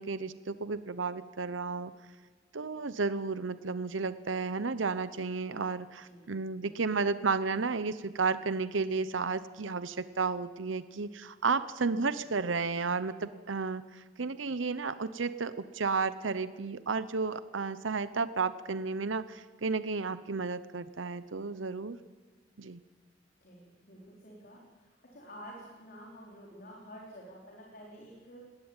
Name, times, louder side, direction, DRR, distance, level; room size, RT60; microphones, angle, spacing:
voice 1, 0.0-1.9 2.5-22.0 22.6-22.8, right 4 dB, 90° right, 13 dB, 0.8 m, -32 dB
voice 2, 6.0-6.7 11.8-12.0 23.4-28.4, equal, 50° left, -3 dB, 4.3 m, -50 dB
20.0 x 17.5 x 9.0 m, 1.3 s
head